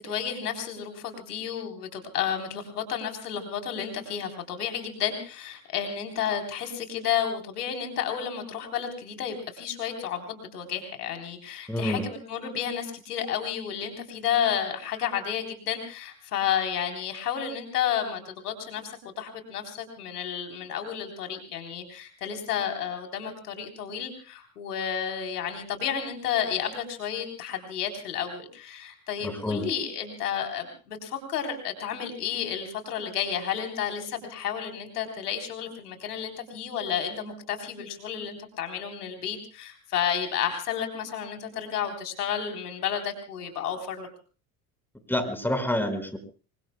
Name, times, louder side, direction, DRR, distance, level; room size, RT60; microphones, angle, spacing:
voice 1, 0.0-44.1, left 8 dB, 90° left, 5 dB, 3.8 m, -31 dB
voice 2, 11.7-12.0 29.2-29.7 45.1-46.2, left 1 dB, 5° left, 8 dB, 5.0 m, -28 dB
26.0 x 24.0 x 2.2 m, 0.37 s
hypercardioid pair, 70°, 45 cm